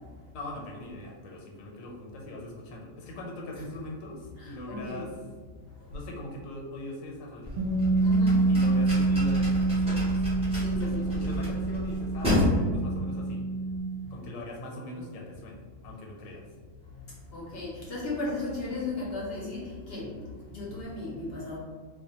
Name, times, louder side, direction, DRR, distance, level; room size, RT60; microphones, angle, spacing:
voice 1, 0.3-5.1 5.9-7.5 8.5-13.4 14.1-16.4, left 1 dB, 85° left, -1 dB, 1.0 m, -41 dB
voice 2, 4.4-5.1 5.8-6.0 8.0-8.5 10.5-11.0 14.0-14.2 16.9-21.6, left 2 dB, 60° left, -5 dB, 0.7 m, -36 dB
sound 1, 7.4-12.5, left 1 dB, 10° right, 0.3 m, -32 dB
Bass guitar, 7.6-13.8, right 3 dB, 65° right, 0.5 m, -26 dB
2.4 x 2.1 x 2.7 m, 1.5 s
omnidirectional pair, 1.4 m